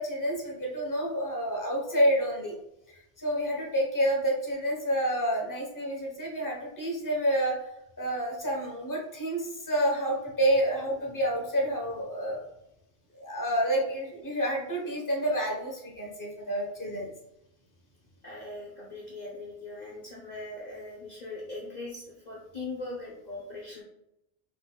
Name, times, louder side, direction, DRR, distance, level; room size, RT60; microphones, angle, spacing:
voice 1, 0.0-2.5 3.2-7.6 8.0-12.4 13.2-17.1, equal, 20° left, -1 dB, 1.0 m, -29 dB
voice 2, 18.2-23.8, left 2 dB, 45° left, -5 dB, 0.8 m, -40 dB
5.0 x 3.8 x 2.3 m, 0.86 s
omnidirectional pair, 1.1 m